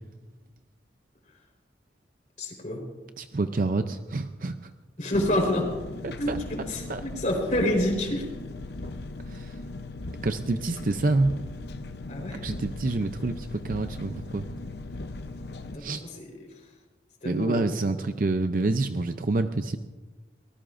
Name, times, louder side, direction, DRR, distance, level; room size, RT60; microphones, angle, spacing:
voice 1, 2.4-2.8 5.0-5.7 6.2-8.3 12.1-12.4 15.7-16.3 17.2-17.8, left 1 dB, 45° left, 1 dB, 4.2 m, -28 dB
voice 2, 3.2-4.7 6.0-6.4 6.9-7.0 9.2-9.6 10.2-11.4 12.4-14.5 15.8-16.0 17.2-19.8, right 2 dB, 50° right, 8 dB, 0.5 m, -27 dB
Engine, 5.1-15.8, left 2 dB, 65° left, 0.8 m, -38 dB
23.5 x 19.0 x 2.6 m, 1.2 s
head